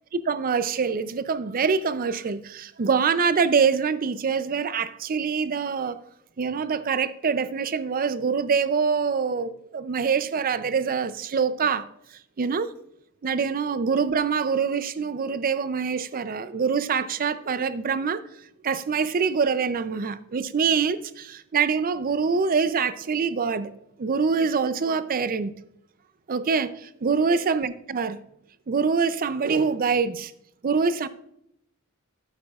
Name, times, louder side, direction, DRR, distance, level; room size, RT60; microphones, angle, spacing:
voice 1, 0.1-6.0 6.4-11.9 12.4-12.7 13.2-18.2 18.6-23.7 24.0-25.5 26.3-28.2 28.7-30.3 30.6-31.1, right 5 dB, 40° right, 0.5 m, -25 dB
13.5 x 7.6 x 2.4 m
head